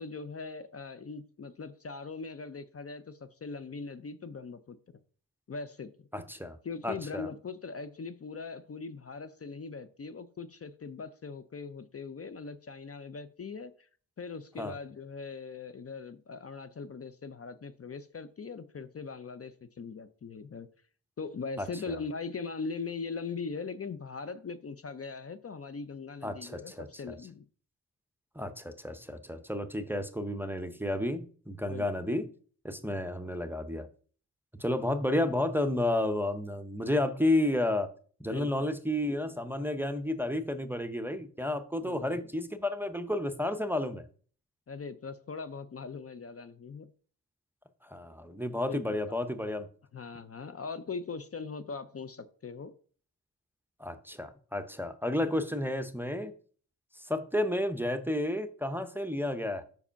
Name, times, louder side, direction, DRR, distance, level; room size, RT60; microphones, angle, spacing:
voice 1, 0.0-4.8 5.5-5.9 6.6-13.9 14.2-20.7 21.2-27.4 31.7-31.9 38.3-38.5 41.8-42.2 44.7-46.9 48.7-49.0 49.9-52.7, left 4 dB, 40° left, 0.5 m, -40 dB
voice 2, 6.1-6.6 6.8-7.3 14.6-14.8 21.6-22.0 26.2-27.2 28.4-32.3 32.6-33.9 34.6-37.9 38.2-44.0 47.8-49.7 53.8-56.3 56.9-59.6, left 1 dB, 5° right, 0.6 m, -31 dB
5.3 x 4.9 x 5.6 m
wide cardioid pair, 95°, 37 cm